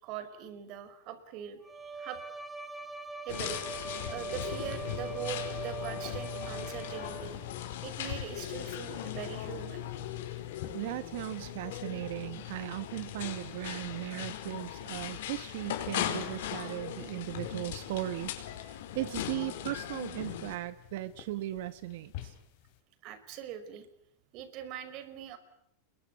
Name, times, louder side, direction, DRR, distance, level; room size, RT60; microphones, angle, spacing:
voice 1, 0.0-2.2 3.2-3.6 4.1-7.4 7.8-9.9 23.0-23.9 24.3-25.4, right 9 dB, 45° right, 10 dB, 5.2 m, -42 dB
Bowed string instrument, 1.6-7.4, right 4 dB, 5° right, 2.6 m, -42 dB
sound 1, 3.3-20.6, left 11 dB, 75° left, 4.6 m, -39 dB
sound 2, 4.4-22.8, left 16 dB, 55° left, 4.4 m, -47 dB
voice 2, 10.7-22.3, right 15 dB, 70° right, 13 dB, 1.4 m, -37 dB
28.5 x 23.0 x 8.5 m, 0.73 s
supercardioid pair, 150°, 0 cm